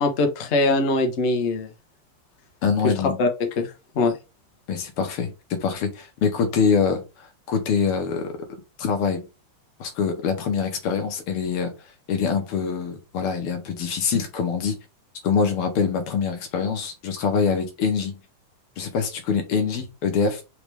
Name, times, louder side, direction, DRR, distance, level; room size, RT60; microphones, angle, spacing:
voice 1, 0.0-1.7 2.8-2.9 3.2-3.3 3.6-4.1, left 2 dB, 50° left, 5 dB, 0.9 m, -22 dB
voice 2, 2.6-3.2 4.7-8.3 8.8-9.2 9.8-11.7 12.1-14.8 15.2-18.2 18.8-20.4, left 6 dB, 90° left, 5 dB, 2.0 m, -24 dB
4.9 x 3.1 x 3.3 m, 0.28 s
omnidirectional pair, 2.4 m